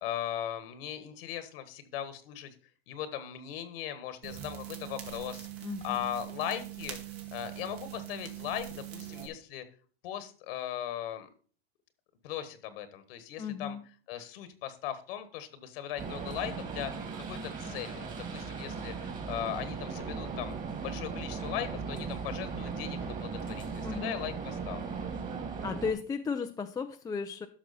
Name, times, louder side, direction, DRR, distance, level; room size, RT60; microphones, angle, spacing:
voice 1, 0.0-2.5 2.9-5.5 5.8-7.0 7.3-9.6 10.0-11.3 12.2-13.8 14.1-16.9 17.3-18.9 19.3-20.5 20.8-24.9, left 10 dB, 70° left, 11 dB, 1.5 m, -38 dB
sound 1, 4.2-9.3, right 12 dB, 75° right, 2.4 m, -42 dB
voice 2, 5.6-6.1 13.4-13.8 23.8-24.2 25.6-27.5, left 5 dB, 10° left, 5 dB, 0.4 m, -35 dB
sound 2, 16.0-25.9, right 5 dB, 25° right, 2.0 m, -38 dB
12.0 x 6.0 x 4.2 m, 0.41 s
supercardioid pair, 120°, 30 cm